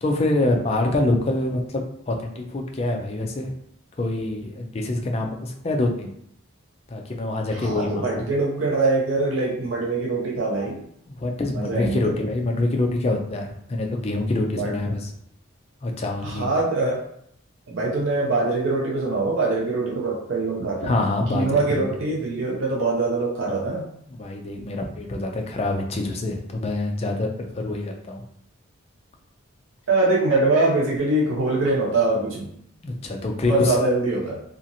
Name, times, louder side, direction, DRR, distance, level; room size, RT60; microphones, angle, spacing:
voice 1, 0.0-1.8 2.1-3.5 4.0-6.1 6.9-8.2 11.1-15.1 15.8-16.5 20.8-21.8 24.1-28.2 32.8-33.8, left 2 dB, 30° left, 2 dB, 0.4 m, -25 dB
voice 2, 7.5-10.8 11.5-12.2 14.5-14.7 16.2-17.1 17.7-21.0 21.3-23.9 29.9-32.5 33.5-34.4, right 2 dB, 70° right, -3 dB, 0.6 m, -23 dB
2.8 x 2.4 x 2.6 m, 0.71 s
head